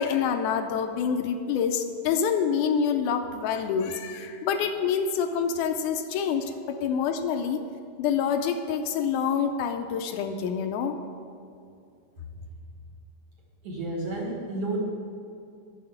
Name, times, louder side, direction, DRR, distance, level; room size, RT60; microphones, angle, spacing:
voice 1, 0.0-7.6 8.0-11.0, left 7 dB, 80° left, 7 dB, 2.0 m, -27 dB
voice 2, 13.6-14.8, right 2 dB, 55° right, -3 dB, 1.9 m, -31 dB
7.7 x 6.4 x 7.9 m, 2.5 s
omnidirectional pair, 3.7 m